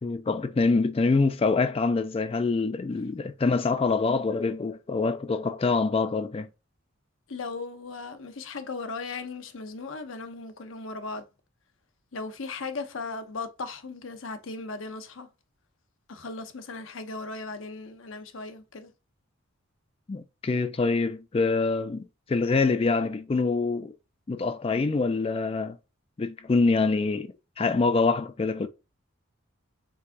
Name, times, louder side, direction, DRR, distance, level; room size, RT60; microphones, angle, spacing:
voice 1, 0.0-6.5 20.1-23.9 24.3-25.8 26.2-28.7, left 3 dB, 25° left, 0.3 m, -25 dB
voice 2, 7.3-11.3 12.1-15.3 16.1-18.9, left 3 dB, 65° left, 0.8 m, -37 dB
4.7 x 3.5 x 2.7 m
head